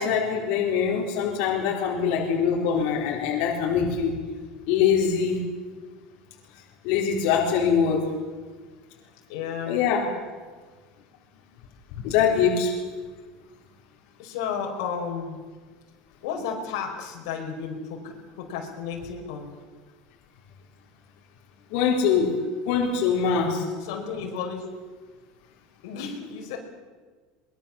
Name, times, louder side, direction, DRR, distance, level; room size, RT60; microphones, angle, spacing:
voice 1, 0.0-4.2 4.7-5.4 6.8-8.1 9.7-10.0 12.0-12.7 21.7-22.4 22.7-23.7, left 7 dB, 65° left, -2 dB, 4.3 m, -23 dB
voice 2, 9.3-9.8 14.2-15.4 16.2-19.5 23.8-24.7 25.8-26.6, left 6 dB, 85° left, 2 dB, 4.9 m, -33 dB
23.5 x 21.5 x 7.3 m, 1.4 s
cardioid pair, 160°, 2 cm